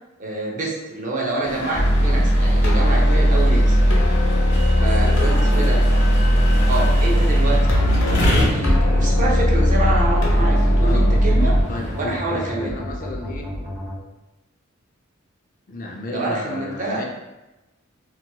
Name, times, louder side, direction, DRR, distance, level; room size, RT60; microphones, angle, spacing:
voice 1, 0.2-3.8 4.8-5.8 6.7-11.5 11.9-12.8 16.1-17.0, right 2 dB, 40° right, -3 dB, 0.6 m, -27 dB
sound 1, 1.4-12.2, left 1 dB, 60° left, 1.3 m, -29 dB
sound 2, 1.7-11.6, equal, 80° left, 0.8 m, -17 dB
voice 2, 4.7-6.0 10.8-11.2 11.7-13.5 15.7-17.0, left 2 dB, 45° left, 0 dB, 0.4 m, -33 dB
sound 3, 7.1-14.0, left 1 dB, 15° right, 1.3 m, -32 dB
2.9 x 2.8 x 2.2 m, 1.0 s
head